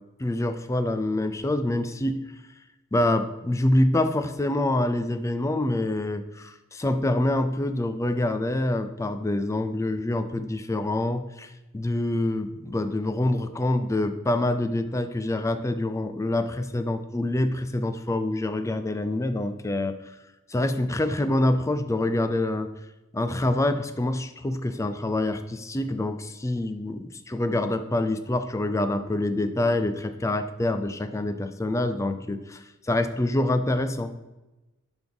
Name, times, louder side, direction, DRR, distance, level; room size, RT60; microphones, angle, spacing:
voice 1, 0.2-2.2 2.9-20.0 20.5-22.7 23.1-34.1, left 1 dB, 15° left, 9 dB, 0.4 m, -26 dB
10.5 x 3.6 x 4.0 m, 1.0 s
head